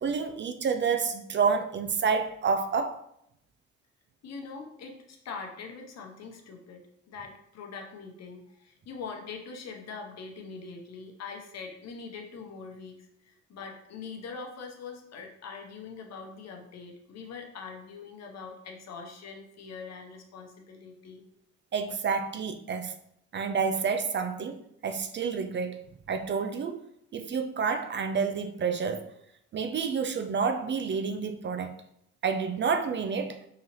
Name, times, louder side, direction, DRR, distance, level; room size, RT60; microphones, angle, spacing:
voice 1, 0.0-3.0 21.7-22.9 23.3-26.8 27.1-29.1 29.5-31.7 32.2-33.4, right 5 dB, 40° right, 0.4 m, -29 dB
voice 2, 4.2-21.2, left 5 dB, 60° left, 0.8 m, -43 dB
3.8 x 2.9 x 3.0 m
cardioid pair, 90°, 30 cm